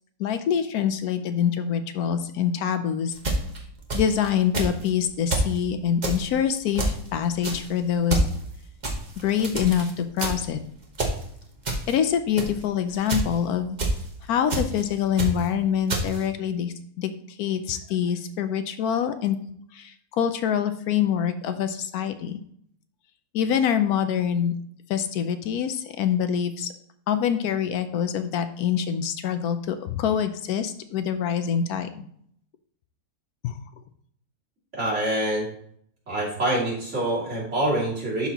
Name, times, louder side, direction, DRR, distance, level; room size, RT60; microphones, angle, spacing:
voice 1, 0.2-3.2 3.9-8.2 9.2-10.6 11.9-13.8 14.2-19.4 19.7-22.4 23.3-24.5 24.9-26.7 27.1-32.1 33.4-33.5, left 8 dB, 75° left, 10 dB, 1.1 m, -25 dB
sound 1, 3.1-4.3 4.5-4.9 5.3-5.6 6.0-6.3 6.8-7.1 7.4-7.7 8.1-8.4 8.8-9.9 10.2-10.5 10.9-11.2 11.7-11.9 12.4-12.6 13.1-13.3 13.8-14.1 14.5-14.8 15.2-15.5 15.9-16.2, right 2 dB, 30° right, 1.1 m, -27 dB
voice 2, 34.7-35.5 36.1-38.3, right 1 dB, 50° right, -7 dB, 3.1 m, -25 dB
11.5 x 4.1 x 2.9 m, 0.65 s
omnidirectional pair, 1.6 m